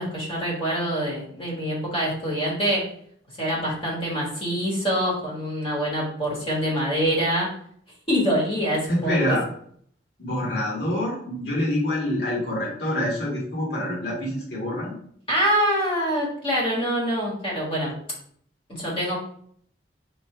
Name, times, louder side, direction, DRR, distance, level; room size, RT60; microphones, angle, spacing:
voice 1, 0.0-2.9 3.4-7.5 8.1-9.4 15.3-17.9 18.8-19.2, equal, 30° left, -4 dB, 1.5 m, -25 dB
voice 2, 8.9-9.4 10.2-15.0, left 1 dB, 65° left, -5 dB, 1.7 m, -26 dB
3.1 x 3.0 x 4.4 m, 0.63 s
head